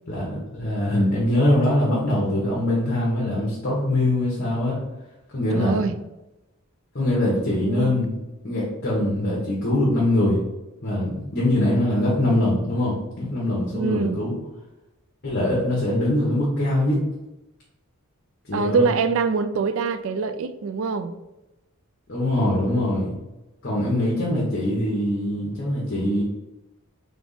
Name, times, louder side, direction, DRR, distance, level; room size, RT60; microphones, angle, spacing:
voice 1, 0.1-4.8 5.3-5.7 6.9-8.1 8.4-10.4 10.8-14.3 15.2-17.0 18.5-18.9 22.1-23.1 23.6-26.2, left 1 dB, 45° left, -6 dB, 1.0 m, -23 dB
voice 2, 5.5-5.9 7.6-8.0 13.7-14.2 18.5-21.1, right 5 dB, 60° right, 12 dB, 0.3 m, -24 dB
3.5 x 3.4 x 4.0 m, 0.98 s
head